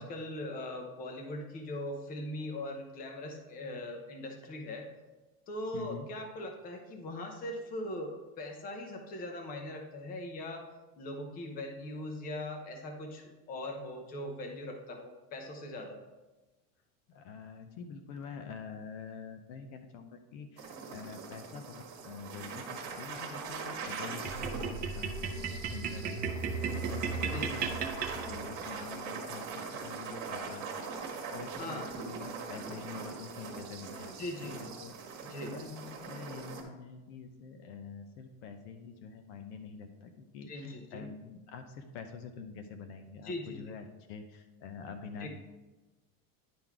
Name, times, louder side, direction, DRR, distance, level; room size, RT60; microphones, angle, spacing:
voice 1, 0.0-4.9 5.5-10.7 11.0-16.0 27.3-27.5 31.6-31.9 34.2-34.5 35.3-35.5 40.5-41.0 43.2-43.6 45.2-45.3, left 1 dB, 20° left, 3 dB, 0.8 m, -40 dB
voice 2, 5.7-6.1 17.1-27.9 28.1-45.3, left 5 dB, 55° left, 7 dB, 0.8 m, -46 dB
sound 1, 20.6-36.6, right 5 dB, 45° right, 1.7 m, -42 dB
sound 2, 24.2-28.7, right 5 dB, 25° right, 0.4 m, -35 dB
10.5 x 3.9 x 4.6 m, 1.1 s
cardioid pair, 175°, 41 cm